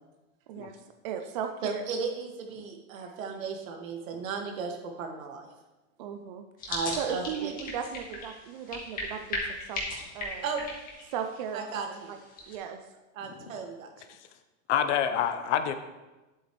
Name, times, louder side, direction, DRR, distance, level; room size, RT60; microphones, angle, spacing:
voice 1, 1.0-1.8 3.0-3.1 6.0-9.8 10.1-10.5 11.1-12.2 12.5-12.8 15.1-15.2, right 8 dB, 35° right, 6 dB, 0.4 m, -37 dB
voice 2, 1.6-5.5 6.7-7.5 10.4-10.6 11.5-12.1 13.2-13.9, right 5 dB, 80° right, 3 dB, 2.0 m, -35 dB
sound 1, 6.6-12.5, left 2 dB, 20° left, 1.8 m, -38 dB
voice 3, 14.7-15.7, left 9 dB, 60° left, 9 dB, 0.9 m, -27 dB
10.5 x 8.0 x 3.2 m, 1.1 s
supercardioid pair, 170°, 39 cm